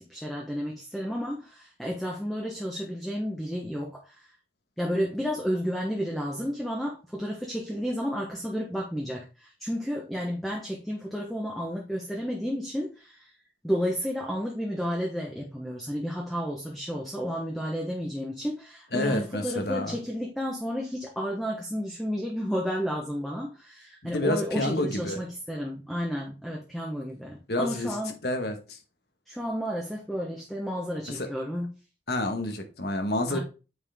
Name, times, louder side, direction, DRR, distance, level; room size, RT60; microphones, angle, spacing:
voice 1, 0.0-4.3 4.8-13.3 13.6-28.1 29.3-31.7 33.3-33.4, equal, ahead, 1.1 m, -32 dB
voice 2, 18.9-20.0 24.0-25.2 27.5-28.0 28.2-28.8 31.1-31.3 32.1-33.4, left 1 dB, 65° left, 1.5 m, -29 dB
8.5 x 4.7 x 3.6 m
head